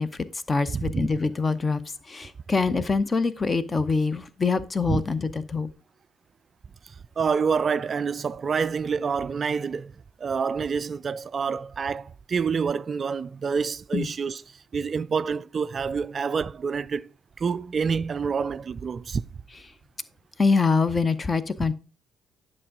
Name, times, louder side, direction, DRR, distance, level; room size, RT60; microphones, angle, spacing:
voice 1, 0.0-1.8 2.1-5.7 13.9-14.1 20.4-21.7, left 4 dB, 30° left, 0.8 m, -24 dB
voice 2, 0.7-1.1 4.9-5.0 6.8-9.9 10.2-17.1 17.4-19.2, right 6 dB, 40° right, 0.3 m, -27 dB
11.0 x 5.4 x 3.7 m
figure-of-eight pair, 45°, 0 cm